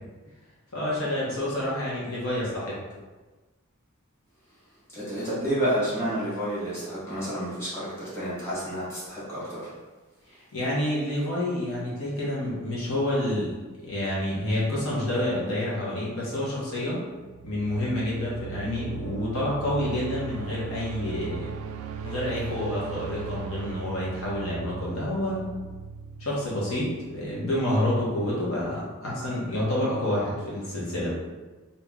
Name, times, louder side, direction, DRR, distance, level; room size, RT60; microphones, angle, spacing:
voice 1, 0.7-2.8 10.5-17.0 17.4-21.5 22.0-25.5 26.2-31.1, left 1 dB, 80° left, -6 dB, 1.1 m, -28 dB
voice 2, 4.9-7.9 8.1-9.6, equal, 15° left, -10 dB, 1.3 m, -29 dB
sound 1, 17.1-27.9, right 6 dB, 85° right, 0.3 m, -38 dB
2.9 x 2.7 x 3.6 m, 1.2 s
head